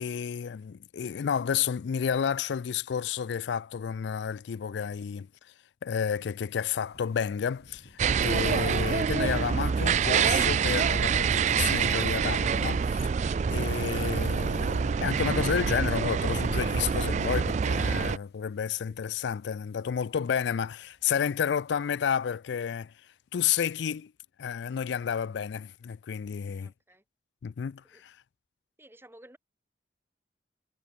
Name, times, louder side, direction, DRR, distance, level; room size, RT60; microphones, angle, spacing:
voice 1, 0.0-5.3 5.8-13.1 13.5-22.9 23.3-24.1 24.4-26.7 27.4-28.2, left 7 dB, 85° left, 0.4 m, -31 dB
sound 1, 6.1-22.1, left 1 dB, 65° left, 5.1 m, -61 dB
sound 2, 8.0-18.2, right 6 dB, 40° right, 0.3 m, -26 dB
voice 2, 26.6-27.0 27.9-28.0 28.8-29.4, right 1 dB, 15° right, 2.7 m, -54 dB
head